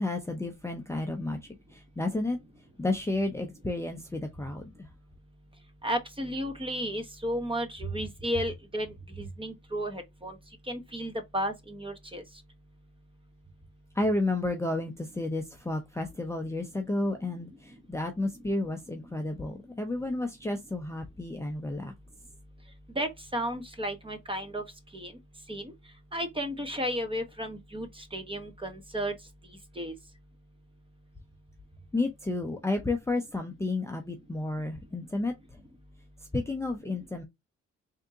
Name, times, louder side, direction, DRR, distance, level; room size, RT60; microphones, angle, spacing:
voice 1, 0.0-1.4 1.7-2.4 2.8-4.9 14.0-21.9 31.9-35.3 36.3-37.2, left 2 dB, 10° left, 0.7 m, -31 dB
voice 2, 5.8-10.4 10.7-12.2 22.9-24.6 24.9-25.1 25.5-25.7 26.1-29.1 29.8-29.9, equal, 15° right, 1.0 m, -33 dB
3.5 x 2.8 x 3.7 m
cardioid pair, 90°, 30 cm